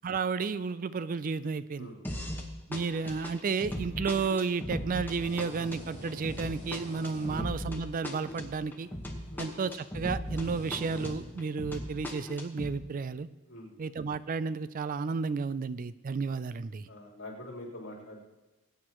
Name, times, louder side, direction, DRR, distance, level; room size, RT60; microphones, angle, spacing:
voice 1, 0.0-1.9 2.7-8.9 9.4-13.3 13.8-16.9, right 5 dB, 40° right, 15 dB, 0.4 m, -32 dB
voice 2, 1.8-2.3 7.3-7.5 9.3-9.5 13.5-13.8 16.9-18.2, left 1 dB, 70° left, -3 dB, 3.9 m, -45 dB
sound 1, 2.0-2.5 2.7-10.5 10.7-12.7, left 1 dB, 10° left, 1.3 m, -38 dB
sound 2, 4.6-11.6, equal, 20° right, 4.7 m, -48 dB
20.5 x 9.5 x 3.0 m, 1.1 s
head